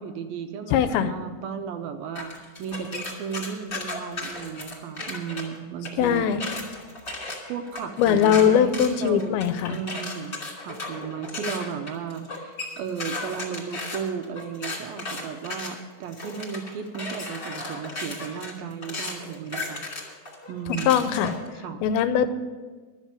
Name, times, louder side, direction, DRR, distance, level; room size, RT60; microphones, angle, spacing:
voice 1, 0.0-6.3 7.5-19.8 20.5-21.1 21.6-21.8, right 7 dB, 80° right, 7 dB, 2.5 m, -35 dB
voice 2, 0.7-1.1 6.0-6.4 8.0-9.8 20.9-21.3 21.8-22.3, left 8 dB, 85° left, 11 dB, 2.5 m, -21 dB
sound 1, 2.2-5.4 5.8-21.5, left 2 dB, 25° left, 2.5 m, -35 dB
12.0 x 7.4 x 8.3 m, 1.4 s
omnidirectional pair, 4.4 m